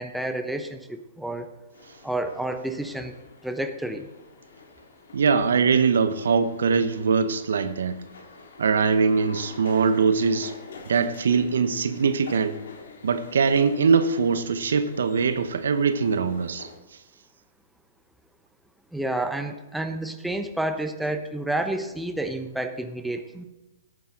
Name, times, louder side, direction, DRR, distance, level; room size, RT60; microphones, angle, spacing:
voice 1, 0.0-1.5 2.0-3.1 3.4-4.1 18.9-23.4, right 1 dB, 5° right, 7 dB, 1.0 m, -30 dB
sound 1, 1.7-16.8, left 4 dB, 65° left, 2.1 m, -47 dB
voice 2, 5.1-8.0 8.6-10.5 10.9-12.6 13.0-16.7, right 5 dB, 65° right, 11 dB, 0.9 m, -22 dB
16.5 x 9.2 x 3.8 m, 1.0 s
figure-of-eight pair, 115°, 0 cm